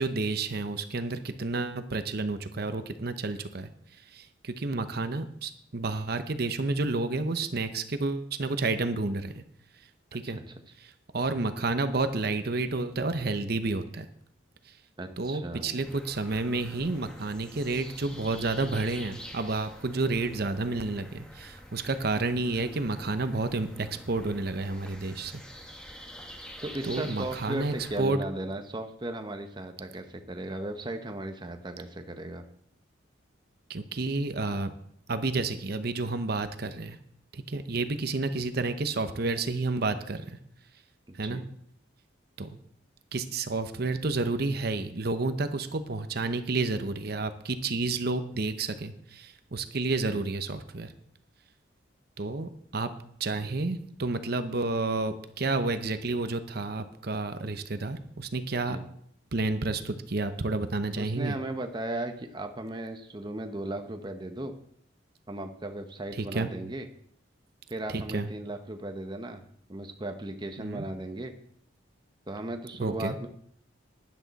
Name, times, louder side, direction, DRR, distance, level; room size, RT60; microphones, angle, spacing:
voice 1, 0.0-3.7 4.1-9.4 10.1-10.4 11.1-14.1 15.2-25.3 26.8-28.2 33.7-34.7 35.1-37.0 37.3-40.4 41.2-41.4 42.4-42.5 43.1-50.9 52.2-52.9 53.2-58.8 59.3-61.4 66.2-66.5 67.9-68.3 70.6-70.8 72.8-73.2, right 3 dB, 55° right, 10 dB, 0.8 m, -30 dB
voice 2, 10.3-10.6 15.0-15.9 26.6-32.4 41.1-41.5 50.1-50.2 58.7-58.8 60.9-64.5 65.3-66.9 67.7-69.4 69.7-71.3 72.3-73.3, right 1 dB, 25° right, 6 dB, 0.8 m, -36 dB
sound 1, 15.8-28.0, equal, 5° left, 1.5 m, -47 dB
12.5 x 10.5 x 4.1 m, 0.67 s
head